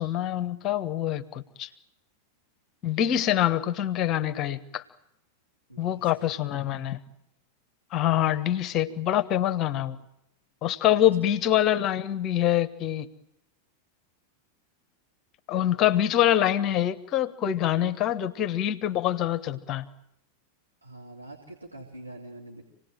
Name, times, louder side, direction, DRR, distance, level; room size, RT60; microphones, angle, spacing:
voice 1, 0.0-1.7 2.8-4.8 5.8-7.0 7.9-10.0 10.6-13.1 15.5-19.9, left 11 dB, 35° left, 12 dB, 1.3 m, -25 dB
voice 2, 5.7-6.6 11.0-11.3 20.8-22.6, right 1 dB, 85° right, -2 dB, 3.3 m, -46 dB
27.5 x 19.0 x 9.2 m, 0.82 s
figure-of-eight pair, 90°, 0 cm